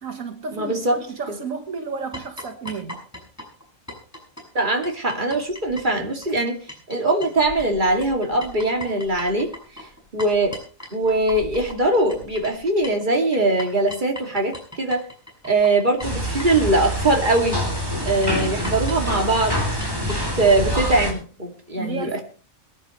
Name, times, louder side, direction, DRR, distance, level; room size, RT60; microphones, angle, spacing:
voice 1, 0.0-3.0 21.8-22.2, right 5 dB, 75° right, 6 dB, 1.8 m, -32 dB
voice 2, 0.5-1.0 1.3-1.4 4.5-6.6 6.9-9.5 9.8-9.9 10.1-10.6 10.9-15.0 15.4-17.6 18.0-19.6 20.1-22.2, right 2 dB, 35° right, 2 dB, 2.7 m, -21 dB
sound 1, 2.1-7.0 7.2-20.2, left 1 dB, 10° left, 6.0 m, -39 dB
sound 2, 16.0-21.1, equal, 15° right, 3.7 m, -26 dB
23.0 x 11.0 x 3.2 m, 0.40 s
omnidirectional pair, 1.4 m